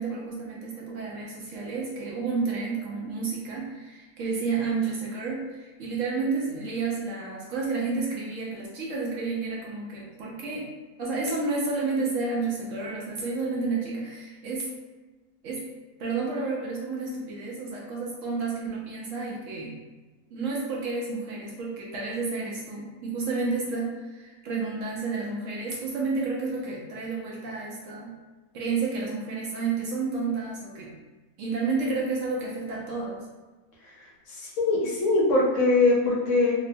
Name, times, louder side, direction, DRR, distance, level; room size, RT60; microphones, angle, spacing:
voice 1, 0.0-10.7 11.0-14.7 15.4-15.6 16.0-19.8 20.3-28.1 28.5-30.9 31.4-33.2, right 4 dB, 70° right, -3 dB, 0.8 m, -30 dB
voice 2, 34.4-36.5, left 2 dB, 65° left, -4 dB, 0.9 m, -22 dB
2.8 x 2.1 x 2.5 m, 1.2 s
omnidirectional pair, 1.5 m